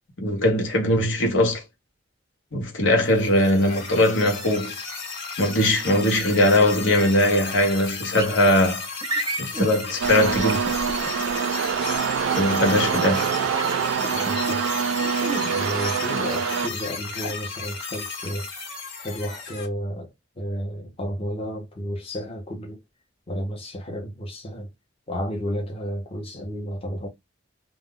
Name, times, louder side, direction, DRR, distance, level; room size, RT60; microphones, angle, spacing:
voice 1, 0.2-1.6 2.5-4.8 5.4-8.8 9.4-10.6 12.3-13.3, left 1 dB, 85° left, 0.9 m, -20 dB
sound 1, 3.0-19.7, left 4 dB, 65° left, 1.2 m, -34 dB
sound 2, 8.1-8.3 9.0-9.7 10.5-11.1 12.6-12.9 13.4-14.5 15.0-15.4, right 2 dB, 25° right, 0.5 m, -30 dB
sound 3, 10.0-16.7, right 7 dB, 85° right, 0.3 m, -25 dB
voice 2, 14.0-14.7 15.4-18.5 19.0-20.1 20.4-22.8 23.3-24.7 25.1-27.1, equal, 30° left, 0.7 m, -32 dB
2.3 x 2.0 x 3.7 m
head